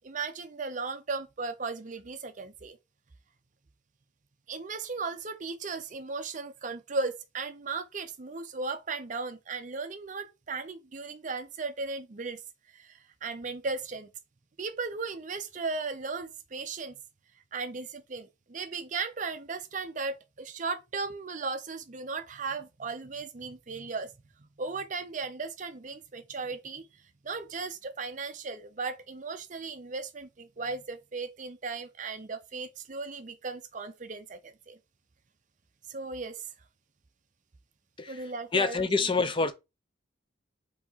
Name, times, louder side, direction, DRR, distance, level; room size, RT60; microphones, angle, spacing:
voice 1, 0.0-2.8 4.5-12.4 12.7-14.1 14.6-17.0 17.5-24.1 24.4-26.9 27.2-34.8 35.9-36.4 38.1-38.9, right 4 dB, 40° right, 0.5 m, -36 dB
voice 2, 38.0-39.5, left 4 dB, 25° left, 0.4 m, -27 dB
4.7 x 2.8 x 4.0 m
head